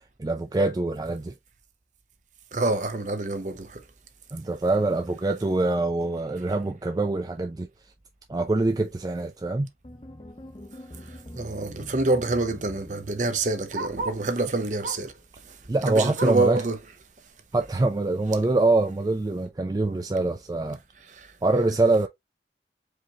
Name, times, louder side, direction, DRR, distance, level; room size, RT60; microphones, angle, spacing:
voice 1, 0.2-1.3 4.3-7.7 8.3-9.7 15.7-16.6 17.5-20.8 21.4-22.1, right 2 dB, 20° right, 0.3 m, -24 dB
voice 2, 2.5-3.8 11.3-15.1 15.9-16.8 21.2-21.3, right 2 dB, 45° right, 0.8 m, -26 dB
sound 1, 9.8-14.1, left 1 dB, 30° left, 0.8 m, -44 dB
Bark, 10.6-10.8 11.2-11.3 11.5-14.3 14.8-15.2 15.6-16.6 17.0-17.1 17.5-17.6 18.3-18.4, right 3 dB, 80° right, 2.1 m, -37 dB
4.9 x 3.1 x 2.8 m
head